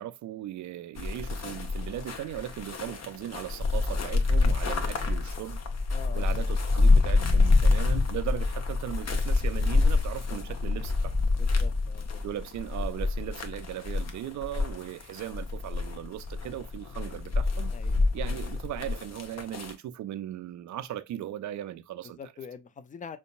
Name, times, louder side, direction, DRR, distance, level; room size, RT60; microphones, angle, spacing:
voice 1, 0.0-5.6 6.1-11.1 12.2-17.7 18.1-22.3, right 12 dB, 40° right, 0.5 m, -38 dB
sound 1, 1.0-19.7, left 3 dB, 35° left, 0.9 m, -27 dB
voice 2, 5.9-6.2 7.5-7.6 11.4-12.2 17.7-18.1 22.0-23.2, left 6 dB, 20° left, 0.4 m, -44 dB
5.1 x 2.3 x 2.3 m
figure-of-eight pair, 45°, 47 cm